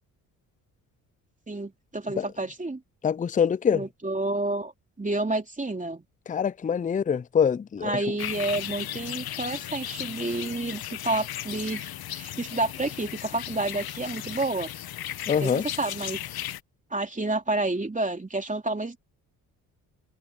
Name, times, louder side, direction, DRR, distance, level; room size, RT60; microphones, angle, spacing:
voice 1, 1.5-2.8 3.7-4.7 5.0-6.0 7.8-14.7 15.4-16.2 16.9-19.0, right 2 dB, 20° right, 3.2 m, -29 dB
voice 2, 3.0-3.8 6.3-8.0 15.3-15.6, left 7 dB, 20° left, 0.5 m, -24 dB
sound 1, 8.2-16.6, left 12 dB, 60° left, 1.5 m, -36 dB
hypercardioid pair, 50°, 41 cm